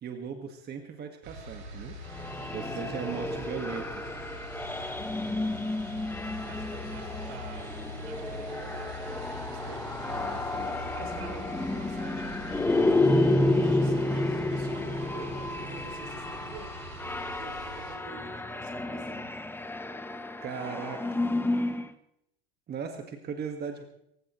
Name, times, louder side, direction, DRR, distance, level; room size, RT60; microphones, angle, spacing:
voice 1, 0.0-2.0 2.5-4.0 10.0-10.9 20.4-21.3 22.7-23.8, right 6 dB, 30° right, 5 dB, 1.7 m, -38 dB
sound 1, 1.2-17.9, right 1 dB, 60° right, 6.2 m, -43 dB
sound 2, 2.1-21.9, left 2 dB, 5° left, 1.0 m, -30 dB
voice 2, 2.2-3.3 4.6-5.6 6.4-7.8 8.0-9.9 10.9-12.7 13.1-16.7 17.4-19.3, right 5 dB, 75° right, 2 dB, 4.8 m, -48 dB
26.0 x 15.5 x 3.2 m, 0.77 s
supercardioid pair, 110°, 31 cm